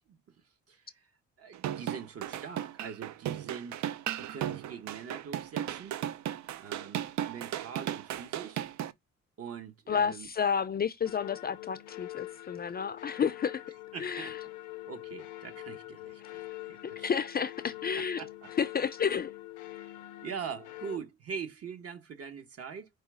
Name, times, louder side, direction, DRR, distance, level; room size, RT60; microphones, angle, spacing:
voice 1, 0.7-1.1 1.4-3.8 4.2-6.0 6.6-8.6 9.4-10.3 13.9-14.3 14.9-16.4 16.7-17.1 18.0-18.5 19.8-19.9 20.2-22.9, right 6 dB, 50° right, 1.1 m, -43 dB
sound 1, 1.5-8.9, right 11 dB, 65° right, 0.5 m, -35 dB
voice 2, 9.9-13.6 14.0-14.3 16.8-18.2 18.6-19.3, left 7 dB, 35° left, 0.4 m, -31 dB
sound 2, 11.0-21.0, left 17 dB, 85° left, 0.6 m, -44 dB
4.8 x 2.3 x 4.8 m
cardioid pair, 90°, 30 cm